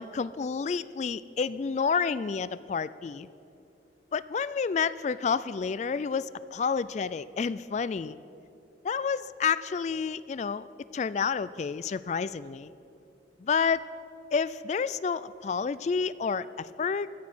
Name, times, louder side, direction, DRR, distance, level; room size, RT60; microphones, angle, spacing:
voice 1, 0.0-3.3 4.1-8.2 8.8-10.6 10.9-12.7 13.4-13.9 14.3-17.1, left 5 dB, 40° left, 17 dB, 0.3 m, -29 dB
17.0 x 12.0 x 6.1 m, 2.7 s
head